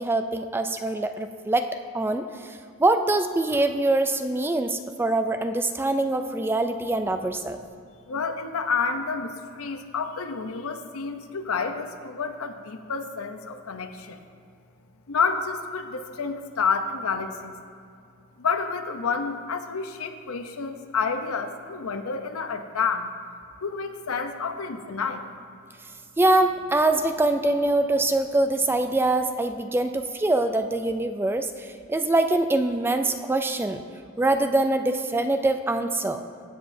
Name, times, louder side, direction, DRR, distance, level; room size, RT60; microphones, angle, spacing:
voice 1, 0.0-7.6 26.2-33.8 34.2-36.2, right 2 dB, 10° right, 7 dB, 0.3 m, -24 dB
voice 2, 8.1-14.2 15.1-17.5 18.4-23.1 23.6-25.3, left 5 dB, 75° left, 7 dB, 0.7 m, -29 dB
16.0 x 7.6 x 2.7 m, 2.3 s
head